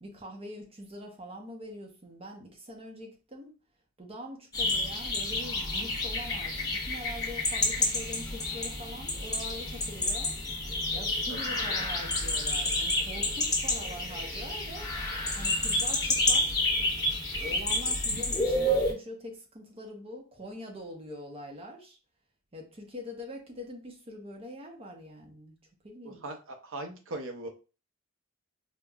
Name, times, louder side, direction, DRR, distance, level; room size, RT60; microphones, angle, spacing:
voice 1, 0.0-3.5 4.0-10.4 10.6-14.9 15.4-16.5 17.4-22.0 22.5-25.6 25.8-26.2, left 1 dB, 25° right, 1 dB, 0.7 m, -43 dB
sound 1, 4.5-18.9, left 2 dB, 20° left, 0.8 m, -29 dB
voice 2, 26.0-27.5, right 2 dB, 65° right, 5 dB, 0.7 m, -39 dB
5.2 x 2.2 x 2.3 m, 0.33 s
head